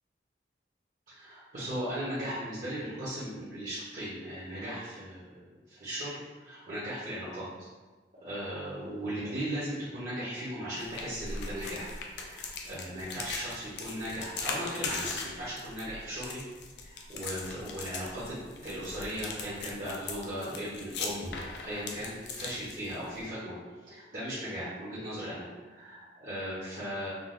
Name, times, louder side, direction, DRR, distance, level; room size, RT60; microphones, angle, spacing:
voice 1, 1.1-7.5 8.2-11.9 12.1-16.4 16.8-23.6 23.8-27.1, equal, 45° right, -10 dB, 0.8 m, -37 dB
sound 1, 10.8-23.2, left 4 dB, 70° left, 0.4 m, -39 dB
3.6 x 2.2 x 2.5 m, 1.3 s
head